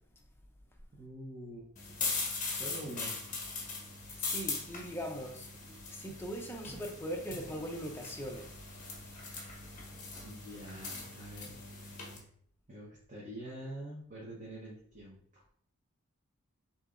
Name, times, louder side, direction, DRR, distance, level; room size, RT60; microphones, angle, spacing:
voice 1, 0.9-1.7 2.5-3.2 10.2-11.5 11.8-12.1 12.7-15.4, right 1 dB, 35° right, -5 dB, 0.9 m, -46 dB
sound 1, 1.8-12.2, left 4 dB, 35° left, 1.1 m, -40 dB
voice 2, 4.2-5.5 5.9-8.5, equal, 10° left, 2 dB, 0.5 m, -40 dB
6.6 x 2.7 x 2.5 m, 0.63 s
head